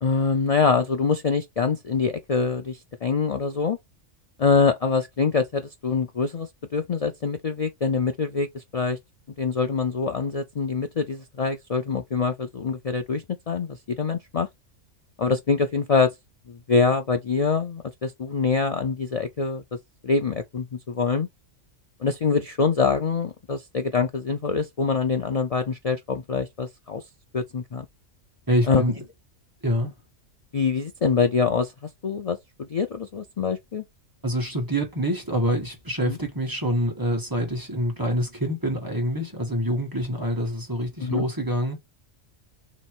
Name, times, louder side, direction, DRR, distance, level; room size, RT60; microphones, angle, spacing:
voice 1, 0.0-3.8 4.4-9.0 9.4-14.5 15.2-16.1 16.5-19.6 20.0-21.3 22.0-27.0 27.3-27.9 28.7-28.8 30.5-31.7 32.0-33.8 36.1-36.2 41.0-41.2, left 5 dB, 70° left, 0.3 m, -24 dB
voice 2, 28.5-28.9 29.6-29.9 34.2-41.8, equal, 15° right, 1.3 m, -26 dB
3.2 x 3.0 x 4.4 m
omnidirectional pair, 1.3 m